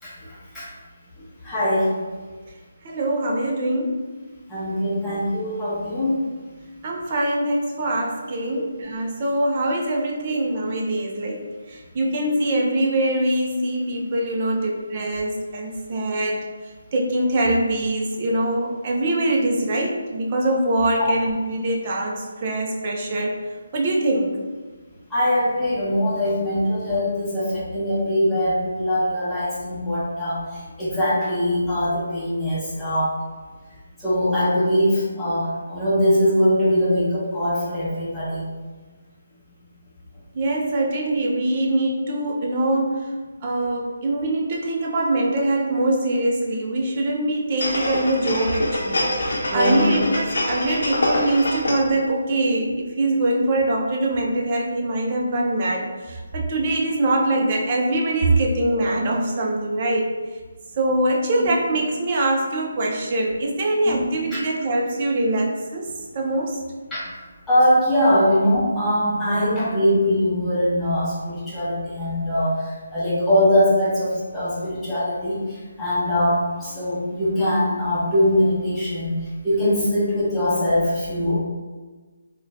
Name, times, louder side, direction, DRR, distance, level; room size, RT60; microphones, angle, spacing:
voice 1, 0.0-0.7 1.4-1.9 4.5-6.1 25.1-33.2 34.0-38.5 49.4-49.8 61.4-61.5 63.8-64.1 64.3-64.4 66.9-67.1 67.5-79.1 79.4-81.4, equal, 5° left, -11 dB, 0.8 m, -22 dB
voice 2, 2.8-4.0 6.8-23.5 23.7-24.4 40.3-43.1 43.4-60.1 60.8-66.6, right 1 dB, 30° right, 0 dB, 0.5 m, -23 dB
sound 1, 47.6-52.0 52.4-52.5, left 1 dB, 70° left, 0.7 m, -25 dB
3.6 x 2.2 x 2.6 m, 1.3 s
hypercardioid pair, 165°, 0 cm